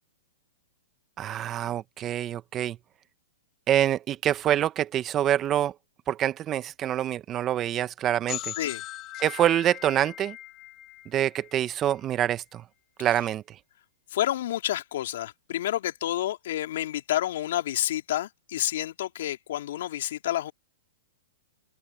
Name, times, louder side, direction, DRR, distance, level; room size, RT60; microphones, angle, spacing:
voice 1, 1.2-2.8 3.7-5.7 6.1-8.5 9.2-10.4 11.1-12.6 13.0-13.4, right 11 dB, 25° right, 1.2 m, -26 dB
sound 1, 8.3-11.9, left 15 dB, 35° left, 2.9 m, -39 dB
voice 2, 14.1-20.5, left 13 dB, 65° left, 3.5 m, -29 dB
open air
hypercardioid pair, 125°, 0 cm